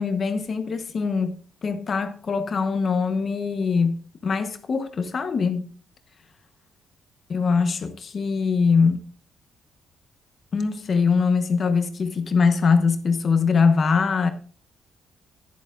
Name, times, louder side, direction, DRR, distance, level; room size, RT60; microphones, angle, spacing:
voice 1, 0.0-5.7 7.3-9.0 10.5-14.3, left 5 dB, 45° left, 1.0 m, -22 dB
10.5 x 10.5 x 2.5 m
cardioid pair, 90°, 0 cm